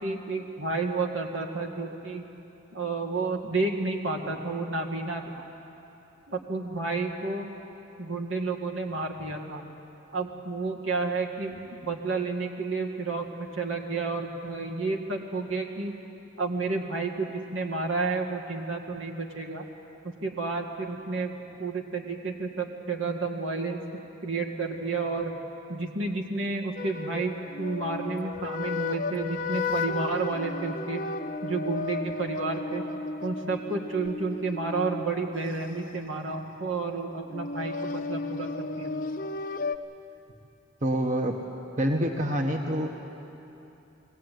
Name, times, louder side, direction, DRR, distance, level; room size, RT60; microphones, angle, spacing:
voice 1, 0.0-2.2 2.7-5.2 6.3-7.5 8.0-9.6 10.1-15.9 16.4-19.6 20.0-23.8 24.2-25.3 25.7-31.0 31.4-32.8 33.2-38.9, right 3 dB, 80° right, 1 dB, 2.1 m, -31 dB
sound 1, 26.8-35.8 37.3-39.8, left 3 dB, 45° left, 0.8 m, -34 dB
voice 2, 40.8-41.4 41.8-42.9, equal, 40° right, 2 dB, 1.2 m, -26 dB
21.5 x 17.0 x 9.3 m, 2.9 s
head